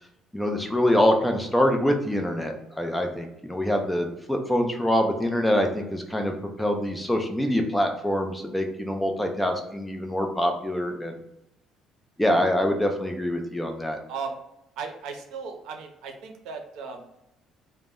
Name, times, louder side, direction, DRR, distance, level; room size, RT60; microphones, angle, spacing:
voice 1, 0.3-6.3 6.6-11.2 12.2-14.0, equal, 5° left, 3 dB, 0.4 m, -25 dB
voice 2, 14.1-14.4 14.8-17.2, right 5 dB, 75° right, 4 dB, 0.5 m, -37 dB
2.1 x 2.0 x 3.5 m, 0.85 s
cardioid pair, 150°, 0 cm